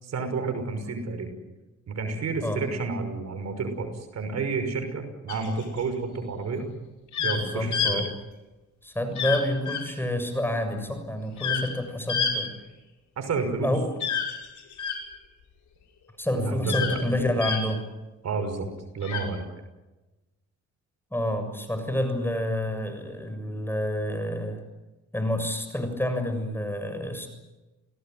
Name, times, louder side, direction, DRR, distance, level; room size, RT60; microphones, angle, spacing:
voice 1, 0.0-1.3 1.9-6.7 7.2-8.0 13.2-13.7 16.3-17.3 18.2-18.7 18.9-19.5, right 4 dB, 60° right, 7 dB, 5.9 m, -30 dB
sound 1, 5.3-5.8 7.1-7.4 7.7-7.9 9.1-9.4 9.6-9.8 11.4-11.7 12.1-12.3 14.0-15.0 16.6-17.0 17.4-17.6 19.0-19.2, left 7 dB, 75° left, 6.2 m, -28 dB
voice 2, 7.2-8.1 8.8-12.5 13.6-13.9 16.2-17.8 21.1-24.6 25.1-27.3, left 1 dB, 5° left, 7 dB, 6.9 m, -28 dB
30.0 x 18.5 x 9.4 m, 1.1 s
cardioid pair, 90°, 30 cm